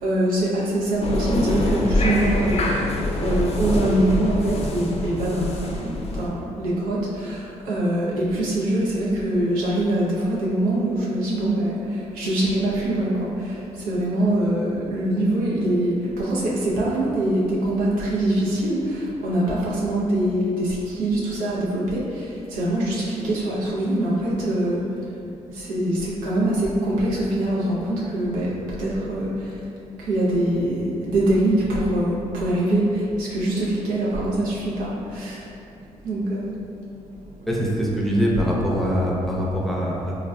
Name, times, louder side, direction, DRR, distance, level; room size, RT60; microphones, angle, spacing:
voice 1, 0.0-2.9 3.2-25.1 25.5-29.6 30.0-35.5 36.0-36.6, right 1 dB, 85° right, -6 dB, 0.6 m, -23 dB
sound 1, 1.0-6.3, left 1 dB, 45° left, 0.4 m, -25 dB
voice 2, 37.5-40.1, equal, ahead, -4 dB, 0.6 m, -23 dB
3.3 x 2.4 x 2.2 m, 2.6 s
supercardioid pair, 55°, 14 cm